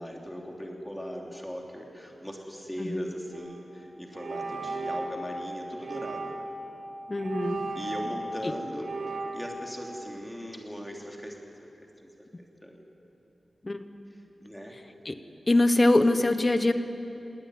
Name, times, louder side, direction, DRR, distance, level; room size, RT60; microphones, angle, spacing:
voice 1, 0.0-6.3 7.7-11.7 12.0-12.1 12.4-12.8 14.1-14.7, equal, 5° left, 0 dB, 3.1 m, -39 dB
sound 1, 3.3-3.5 4.1-5.2 5.8-6.6 7.2-8.4 8.8-9.4, right 3 dB, 75° right, 2.4 m, -35 dB
voice 2, 7.1-7.6 13.6-13.8 15.1-15.2 15.5-16.7, left 2 dB, 30° left, 9 dB, 1.1 m, -23 dB
20.0 x 18.0 x 9.5 m, 2.9 s
wide cardioid pair, 115°, 0 cm